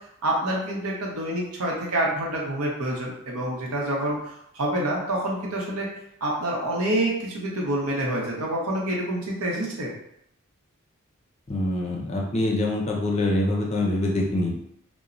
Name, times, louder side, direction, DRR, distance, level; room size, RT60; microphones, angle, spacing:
voice 1, 0.2-4.2 4.5-5.9 6.2-9.9, right 1 dB, 90° right, -3 dB, 0.8 m, -27 dB
voice 2, 11.5-14.5, left 1 dB, 30° left, -1 dB, 0.4 m, -25 dB
3.0 x 2.1 x 2.5 m, 0.77 s
head